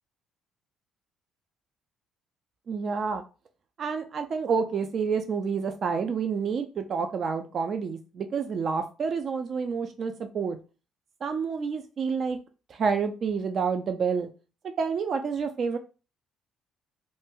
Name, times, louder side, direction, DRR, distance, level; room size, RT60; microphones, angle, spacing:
voice 1, 2.7-3.2 3.8-10.6 11.2-12.4 12.7-14.3 14.8-15.8, right 5 dB, 50° right, 7 dB, 0.3 m, -29 dB
2.5 x 2.1 x 3.5 m, 0.33 s
supercardioid pair, 80°, 0 cm